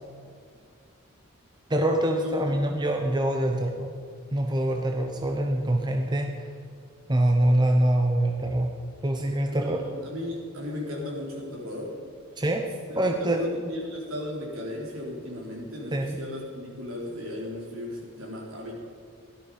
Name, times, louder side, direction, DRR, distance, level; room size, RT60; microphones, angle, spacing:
voice 1, 1.7-3.9 4.3-6.5 7.1-8.7 9.0-9.8 12.4-12.6 13.0-13.5 15.9-16.2, right 1 dB, 20° right, 3 dB, 0.9 m, -24 dB
voice 2, 9.5-11.9 12.9-18.7, left 1 dB, 70° right, -2 dB, 4.2 m, -36 dB
17.5 x 13.0 x 5.1 m, 2.2 s
head